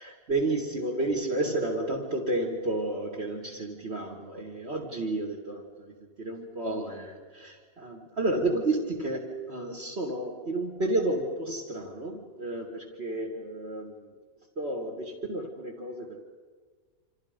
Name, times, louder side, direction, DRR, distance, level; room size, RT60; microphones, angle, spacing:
voice 1, 0.0-14.1 14.6-16.2, right 2 dB, 50° right, 0 dB, 2.2 m, -31 dB
28.0 x 26.5 x 5.2 m, 1.5 s
omnidirectional pair, 1.4 m